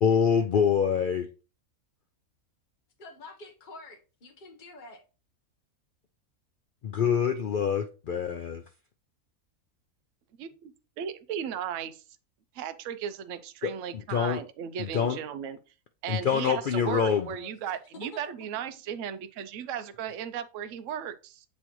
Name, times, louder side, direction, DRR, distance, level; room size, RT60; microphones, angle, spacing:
voice 1, 0.0-1.3 6.8-8.6 13.6-14.4 14.8-15.2 16.1-17.3, left 7 dB, 85° left, 0.4 m, -26 dB
voice 2, 3.0-5.0 16.3-16.6 16.9-17.5 17.9-18.5, left 2 dB, 35° left, 1.2 m, -47 dB
voice 3, 10.4-12.0 12.5-15.6 16.0-21.4, right 8 dB, 65° right, 0.9 m, -36 dB
7.5 x 4.2 x 3.1 m
omnidirectional pair, 1.5 m